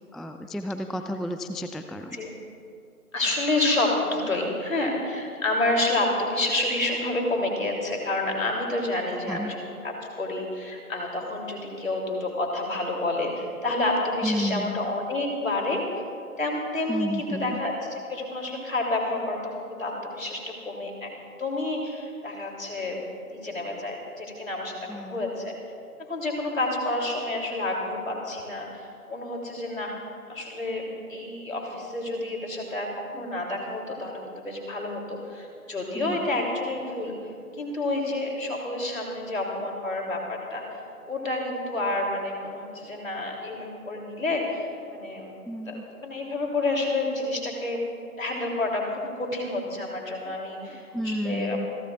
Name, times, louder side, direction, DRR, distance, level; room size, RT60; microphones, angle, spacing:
voice 1, 0.1-2.2 9.3-9.5 14.2-14.7 16.9-17.6 24.9-25.2 35.9-36.2 45.5-45.9 50.3-51.7, equal, ahead, 7 dB, 0.3 m, -32 dB
voice 2, 3.1-15.8 16.4-19.5 19.8-20.4 20.6-21.1 21.4-25.5 26.1-29.9 30.3-30.8 31.1-37.2 37.5-45.3 45.7-47.8 48.2-51.7, left 2 dB, 55° left, 0 dB, 3.3 m, -29 dB
28.0 x 12.5 x 2.5 m, 2.3 s
figure-of-eight pair, 170°, 47 cm